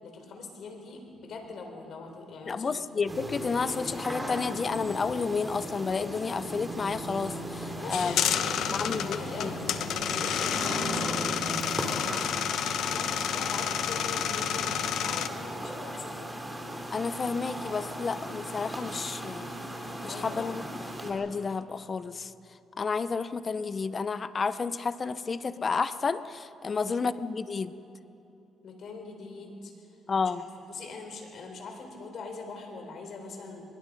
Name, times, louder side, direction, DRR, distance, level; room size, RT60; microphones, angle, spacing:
voice 1, 0.0-2.8 7.8-9.6 10.1-16.3 20.0-20.6 26.7-27.0 28.6-29.9 30.2-33.6, left 3 dB, 65° left, 4 dB, 4.0 m, -43 dB
voice 2, 2.5-8.2 8.7-9.5 16.9-19.5 20.0-20.6 21.0-22.3 22.8-27.8 30.1-30.4, left 5 dB, 40° left, 14 dB, 0.7 m, -31 dB
sound 1, 3.1-21.1, right 1 dB, 10° right, 3.4 m, -37 dB
sound 2, 7.9-15.3, left 9 dB, 80° left, 0.9 m, -30 dB
24.0 x 22.0 x 5.4 m, 2.8 s
cardioid pair, 90°, 0 cm